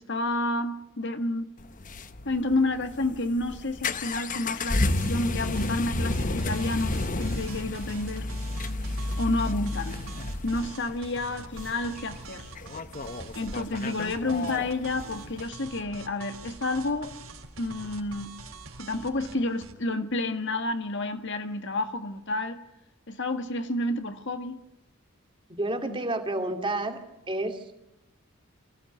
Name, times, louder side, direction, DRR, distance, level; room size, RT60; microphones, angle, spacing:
voice 1, 0.0-1.5 2.2-8.3 9.2-10.1 10.4-12.5 13.3-17.1 17.6-18.4 18.8-22.6 23.1-24.6 25.8-26.0, left 2 dB, 55° left, 1.7 m, -30 dB
sound 1, 1.6-15.4, left 2 dB, 35° left, 1.0 m, -32 dB
sound 2, 4.9-19.7, right 3 dB, 65° right, 3.5 m, -45 dB
voice 2, 25.5-27.0 27.3-27.8, right 2 dB, 20° right, 2.4 m, -30 dB
24.0 x 16.0 x 9.3 m
head